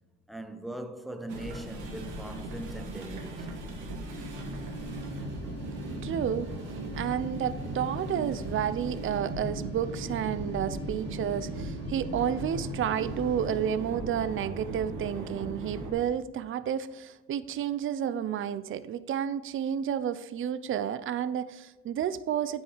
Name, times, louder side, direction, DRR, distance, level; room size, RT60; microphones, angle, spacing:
voice 1, 0.3-3.6, right 1 dB, ahead, 0.9 m, -40 dB
sound 1, 1.3-15.9, right 2 dB, 85° right, 1.6 m, -38 dB
sound 2, 4.0-13.7, left 1 dB, 55° left, 2.0 m, -43 dB
voice 2, 6.0-6.5 6.9-22.6, right 9 dB, 45° right, 0.5 m, -31 dB
9.6 x 5.5 x 4.9 m
cardioid pair, 90°, 30 cm